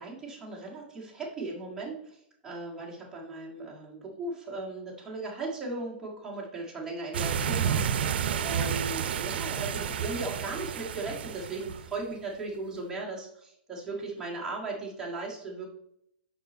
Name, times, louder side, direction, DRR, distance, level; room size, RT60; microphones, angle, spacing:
voice 1, 0.0-15.7, right 2 dB, 10° right, -5 dB, 1.7 m, -37 dB
sound 1, 7.1-12.0, right 8 dB, 75° right, 0.6 m, -30 dB
5.9 x 5.5 x 4.4 m, 0.73 s
hypercardioid pair, 160°, 6 cm